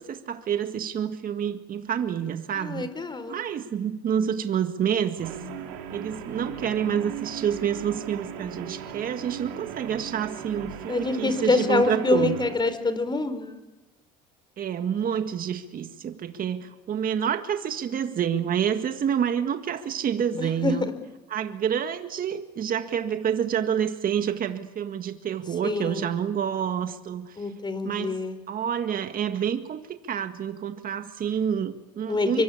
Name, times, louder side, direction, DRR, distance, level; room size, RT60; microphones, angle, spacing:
voice 1, 0.0-2.9 3.3-5.4 5.9-12.4 14.6-20.9 21.3-27.4 27.8-28.2 28.5-32.4, right 8 dB, 50° right, 8 dB, 1.9 m, -28 dB
voice 2, 2.5-3.4 10.9-13.6 20.4-20.9 25.6-26.1 27.4-28.3 32.1-32.4, left 3 dB, 25° left, 11 dB, 4.7 m, -26 dB
Guitar, 5.2-12.6, right 8 dB, 80° right, 4.6 m, -37 dB
24.5 x 24.0 x 8.6 m, 1.1 s
supercardioid pair, 75°, 19 cm